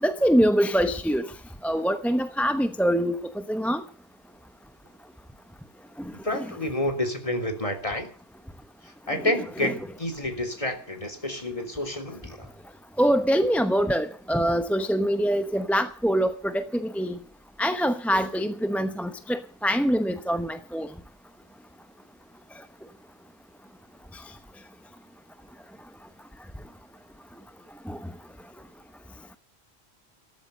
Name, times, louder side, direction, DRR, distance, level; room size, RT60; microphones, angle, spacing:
voice 1, 0.0-1.3 1.6-3.8 6.0-6.5 9.1-9.3 9.6-9.8 13.0-17.2 17.6-20.9 24.1-24.2 27.9-28.0, equal, ahead, 0.8 m, -24 dB
voice 2, 6.2-8.1 9.1-12.5, left 1 dB, 30° left, 3.4 m, -29 dB
14.0 x 13.5 x 6.7 m
omnidirectional pair, 1.1 m